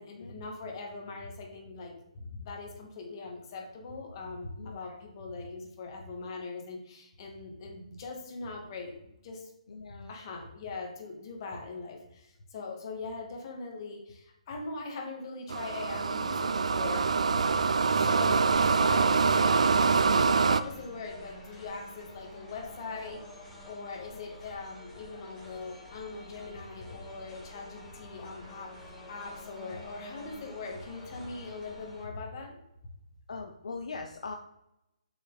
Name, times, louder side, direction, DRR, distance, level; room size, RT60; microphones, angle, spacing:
voice 1, 0.0-9.5 10.1-17.0 17.9-23.4 23.6-28.7 29.1-32.6, left 3 dB, 40° left, 1 dB, 2.3 m, -41 dB
voice 2, 4.6-5.0 9.7-10.1 33.3-34.3, left 4 dB, 65° left, 3 dB, 0.8 m, -41 dB
sound 1, 15.5-20.6, right 5 dB, 65° right, 0.5 m, -25 dB
sound 2, 17.6-32.1, left 1 dB, 10° left, 2.3 m, -49 dB
7.7 x 6.1 x 4.2 m, 0.87 s
figure-of-eight pair, 140°, 4 cm